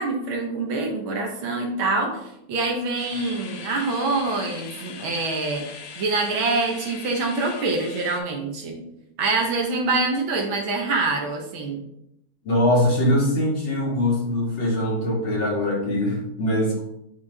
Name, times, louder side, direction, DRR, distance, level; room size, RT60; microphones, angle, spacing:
voice 1, 0.0-5.6 6.0-8.8 9.2-11.8, right 3 dB, 70° right, 1 dB, 2.0 m, -25 dB
sound 1, 3.0-8.2, left 6 dB, 80° left, 1.7 m, -40 dB
voice 2, 12.4-16.8, left 1 dB, 65° left, -5 dB, 3.0 m, -22 dB
8.4 x 3.6 x 3.6 m, 0.80 s
omnidirectional pair, 2.4 m